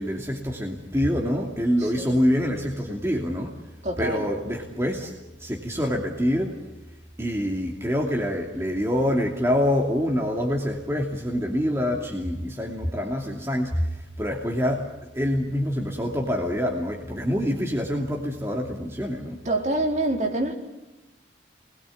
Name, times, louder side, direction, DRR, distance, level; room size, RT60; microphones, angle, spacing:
voice 1, 0.0-3.6 4.0-5.1 5.4-6.6 7.2-19.4, equal, 15° right, 0 dB, 2.7 m, -26 dB
voice 2, 1.8-2.2 3.8-4.3 19.4-20.5, right 2 dB, 40° right, 2 dB, 4.2 m, -26 dB
27.5 x 21.0 x 8.5 m, 1.0 s
head